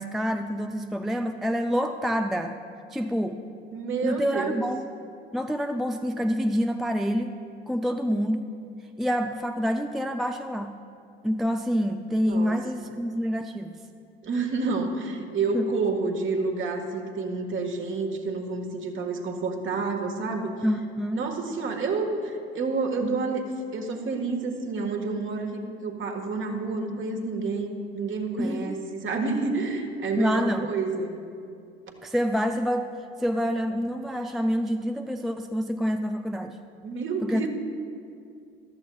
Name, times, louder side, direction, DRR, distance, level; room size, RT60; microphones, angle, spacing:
voice 1, 0.0-2.5 2.9-3.4 4.0-4.9 5.3-7.3 7.7-8.5 9.0-10.8 11.2-13.8 15.5-15.7 20.6-21.2 28.4-28.8 30.2-30.7 32.0-32.9 33.2-36.6 37.2-37.5, equal, ahead, 6 dB, 0.4 m, -27 dB
voice 2, 3.7-4.6 12.3-12.9 14.2-20.5 21.2-23.4 23.7-31.2 36.8-37.5, right 4 dB, 40° right, 3 dB, 1.7 m, -29 dB
14.5 x 13.0 x 2.4 m, 2.4 s
hypercardioid pair, 65°, 31 cm